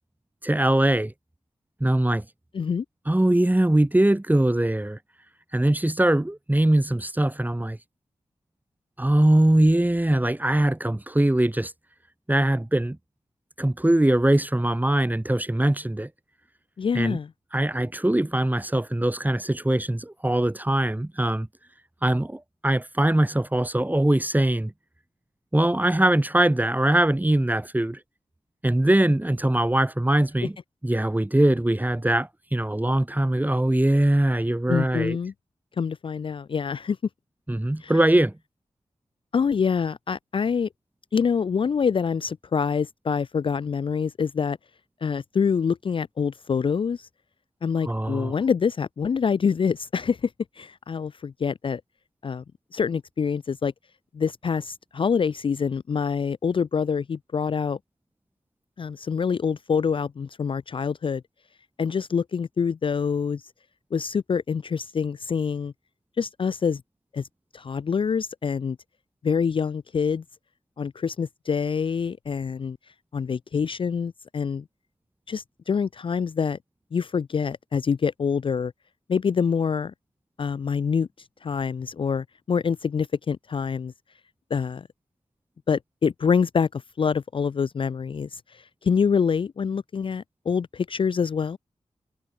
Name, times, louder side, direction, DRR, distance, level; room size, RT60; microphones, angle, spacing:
voice 1, 0.4-1.1 1.8-2.2 3.1-5.0 5.5-7.8 9.0-11.7 12.3-13.0 13.6-16.1 16.9-17.2 17.5-21.5 22.0-24.7 25.5-28.0 28.6-30.6 30.8-35.2 37.5-38.3 47.8-48.3, right 1 dB, 15° right, 1.6 m, -22 dB
voice 2, 16.8-17.3 34.7-35.3 35.8-37.0 37.8-37.9 39.3-40.7 41.1-44.6 45.0-47.1 47.6-50.3 50.6-51.8 52.2-52.4 52.7-53.7 54.1-57.8 58.8-61.2 61.8-63.4 63.9-65.7 66.2-66.8 67.1-67.3 67.5-68.8 69.2-70.2 70.8-72.8 73.1-74.6 75.3-76.6 76.9-78.7 79.1-79.9 80.4-81.1 81.4-83.9 84.5-84.8 85.7-88.4 88.8-91.6, left 6 dB, 45° left, 0.3 m, -26 dB
cardioid pair, 45°, 12 cm